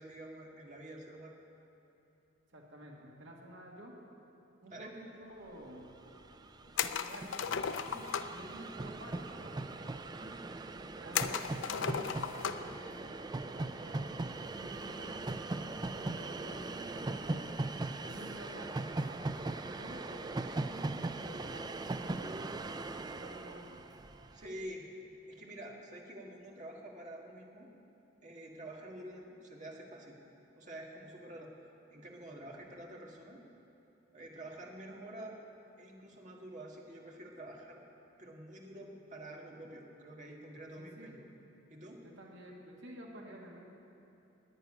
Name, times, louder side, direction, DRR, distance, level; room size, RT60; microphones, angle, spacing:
voice 1, 0.0-1.3 4.7-5.0 24.3-24.9 25.3-27.7 28.2-30.2 30.5-31.5 31.9-33.4 34.1-35.4 35.8-37.8 38.2-41.2 41.7-42.0, right 1 dB, 40° right, -1 dB, 1.7 m, -48 dB
voice 2, 2.5-3.9 4.6-5.8 7.0-7.5 7.9-10.4 11.0-15.1 15.9-17.5 18.0-22.7 23.1-23.8 40.8-41.2 42.0-43.6, right 1 dB, 75° right, -1 dB, 2.0 m, -51 dB
Train, 5.8-5.9 6.1-24.5, right 2 dB, 20° right, 0.4 m, -40 dB
sound 1, 6.8-8.4 11.1-12.8 13.1-13.2 14.8-15.1, left 7 dB, 90° left, 0.5 m, -35 dB
10.5 x 9.2 x 9.6 m, 2.8 s
head